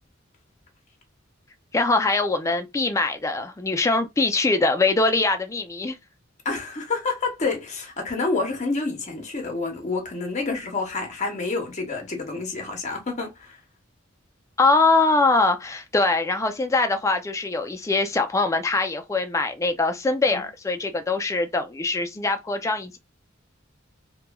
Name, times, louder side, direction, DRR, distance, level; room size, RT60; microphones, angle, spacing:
voice 1, 1.7-5.9 14.6-23.0, left 3 dB, 15° left, 0.3 m, -22 dB
voice 2, 6.4-13.6 20.3-20.5, left 3 dB, 35° left, 0.8 m, -28 dB
3.0 x 2.2 x 2.2 m
head